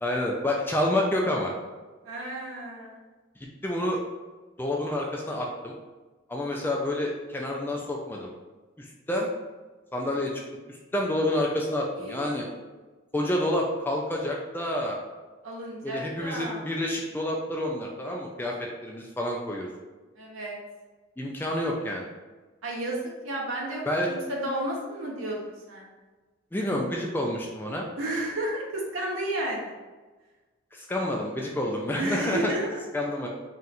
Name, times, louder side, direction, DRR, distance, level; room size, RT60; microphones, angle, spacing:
voice 1, 0.0-1.5 3.6-4.0 4.6-5.7 6.3-8.3 8.8-9.3 9.9-10.3 10.7-12.5 13.1-15.0 15.8-19.7 21.2-22.1 23.9-24.1 26.5-27.9 30.7-32.5 32.9-33.3, left 1 dB, 10° left, -1 dB, 0.4 m, -28 dB
voice 2, 2.0-3.0 12.0-12.6 15.4-16.6 20.2-20.6 22.6-23.8 24.1-25.9 28.0-29.7 32.0-32.8, right 1 dB, 80° right, -2 dB, 0.9 m, -32 dB
3.9 x 2.5 x 4.2 m, 1.3 s
head